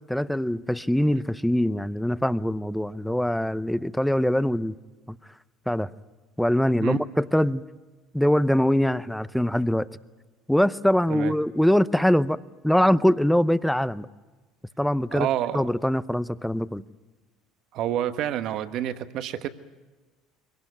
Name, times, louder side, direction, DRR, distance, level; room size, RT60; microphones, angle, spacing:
voice 1, 0.1-4.8 5.1-5.2 5.7-5.9 6.4-7.6 8.1-9.9 10.5-12.4 12.6-14.1 14.8-15.3 15.5-16.8, equal, 5° left, 17 dB, 0.7 m, -23 dB
voice 2, 15.1-15.7 17.7-19.5, right 11 dB, 60° right, 11 dB, 1.2 m, -28 dB
22.5 x 18.0 x 9.6 m, 1.3 s
hypercardioid pair, 75°, 0 cm